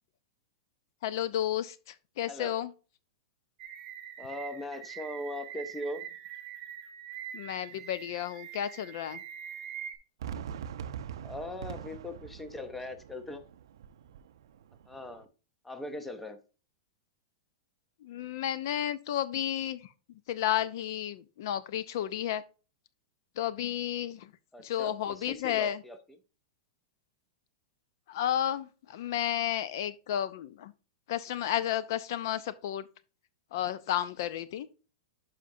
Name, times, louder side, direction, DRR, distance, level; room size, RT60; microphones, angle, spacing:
voice 1, 1.0-2.7 7.3-9.2 18.0-19.9 20.3-22.4 23.4-24.3 24.6-25.8 28.1-30.7 31.1-32.8 33.5-34.7, left 11 dB, 50° left, 0.4 m, -32 dB
sound 1, 3.6-10.0, right 9 dB, 25° right, 1.8 m, -44 dB
voice 2, 4.2-6.1 11.2-13.5 14.9-15.3 15.6-16.4 24.5-26.0, left 1 dB, 5° left, 0.6 m, -40 dB
Fireworks, 10.2-15.2, right 8 dB, 75° right, 0.4 m, -43 dB
10.0 x 5.7 x 2.6 m
supercardioid pair, 170°, 2 cm